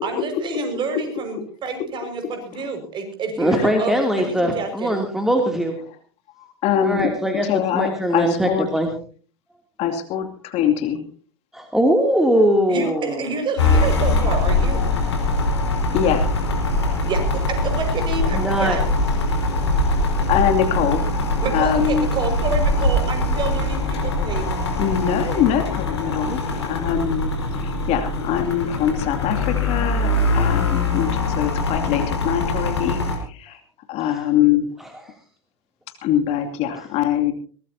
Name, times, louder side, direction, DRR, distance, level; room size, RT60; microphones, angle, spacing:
voice 1, 0.0-5.0 12.7-14.9 17.1-18.8 21.4-24.5, right 4 dB, 35° right, 6 dB, 5.5 m, -28 dB
voice 2, 3.4-5.7 6.8-7.5 7.7-8.9 11.5-13.3 18.3-18.8 34.1-34.2, equal, 5° right, 2 dB, 2.8 m, -21 dB
voice 3, 6.4-7.1 7.4-8.7 9.8-11.0 15.9-16.3 20.3-22.1 24.8-33.6 33.9-34.7 36.0-37.3, left 9 dB, 45° left, 5 dB, 2.6 m, -23 dB
sound 1, 13.6-33.2, left 2 dB, 80° left, 5.3 m, -22 dB
22.5 x 18.5 x 2.8 m, 0.40 s
hypercardioid pair, 90°, 14 cm